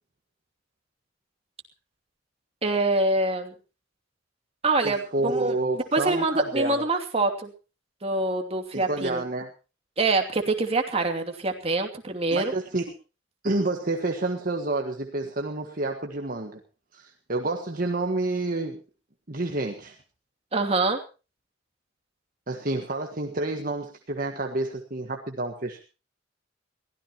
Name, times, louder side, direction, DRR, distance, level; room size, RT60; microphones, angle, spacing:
voice 1, 2.6-3.5 4.6-7.5 8.0-9.2 10.0-12.5 20.5-21.0, right 2 dB, 30° right, 4 dB, 2.7 m, -25 dB
voice 2, 4.8-6.8 8.7-9.5 12.3-12.9 13.4-16.6 16.9-18.8 19.3-20.0 22.5-25.8, right 2 dB, 50° right, 3 dB, 1.6 m, -29 dB
22.5 x 16.5 x 3.0 m, 0.33 s
head